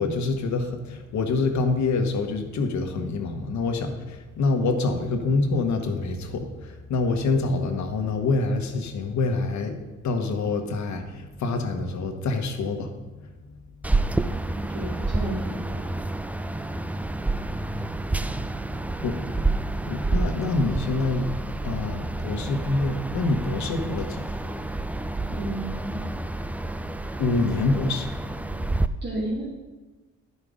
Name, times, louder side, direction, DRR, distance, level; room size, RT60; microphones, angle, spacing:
voice 1, 0.0-9.8 10.0-13.6 18.2-18.3 19.0-19.4 19.8-24.6 25.2-25.3 27.2-28.8, left 3 dB, 65° left, 5 dB, 1.3 m, -26 dB
sound 1, 13.8-28.9, right 2 dB, 5° right, 0.3 m, -29 dB
voice 2, 14.5-15.8 25.3-26.1 29.0-29.5, right 1 dB, 35° right, -7 dB, 2.5 m, -32 dB
11.0 x 5.5 x 5.0 m, 1.2 s
cardioid pair, 90°, 30 cm